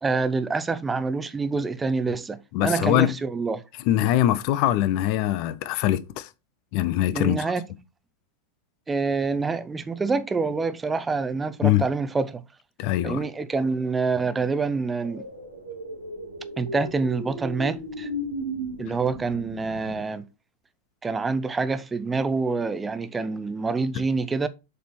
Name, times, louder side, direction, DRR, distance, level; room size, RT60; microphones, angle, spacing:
voice 1, 0.0-3.6 7.1-7.6 8.9-12.4 13.0-15.2 16.6-18.1 18.8-20.2 21.0-24.5, right 4 dB, 15° right, 0.7 m, -26 dB
voice 2, 2.5-3.2 3.9-6.3 6.7-7.4 11.6-11.8 12.8-13.2, left 13 dB, 45° left, 0.6 m, -22 dB
sound 1, 15.0-20.0, equal, 85° right, 2.7 m, -35 dB
7.3 x 4.2 x 4.4 m
figure-of-eight pair, 90°, 0 cm